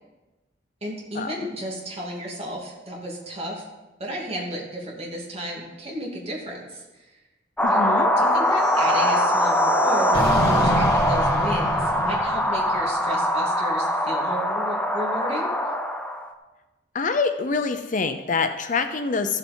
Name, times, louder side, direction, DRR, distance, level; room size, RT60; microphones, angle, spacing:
voice 1, 0.8-3.6 4.0-7.1 7.7-7.8 8.2-15.5, equal, 35° right, -3 dB, 2.8 m, -33 dB
voice 2, 7.6-8.1 16.9-19.4, left 4 dB, 45° left, 8 dB, 0.7 m, -25 dB
sound 1, 7.6-16.3, equal, 5° left, 0.8 m, -22 dB
sound 2, 8.6-12.9, equal, 60° left, 1.6 m, -29 dB
14.5 x 7.9 x 4.5 m, 1.1 s
head